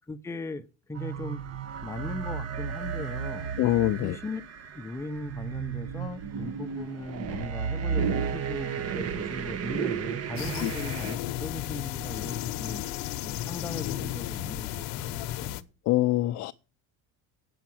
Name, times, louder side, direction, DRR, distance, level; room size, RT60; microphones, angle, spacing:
voice 1, 0.1-1.4 1.8-3.5 4.0-4.4 4.7-12.8 13.2-15.6, left 2 dB, 10° left, 0.7 m, -38 dB
sound 1, 0.9-11.2, right 7 dB, 40° right, 1.1 m, -33 dB
voice 2, 3.6-4.2 10.6-10.7 15.0-15.1 15.9-16.5, left 15 dB, 50° left, 0.5 m, -24 dB
sound 2, 10.4-15.6, left 14 dB, 70° left, 0.9 m, -34 dB
8.7 x 7.0 x 7.7 m
supercardioid pair, 120°, 36 cm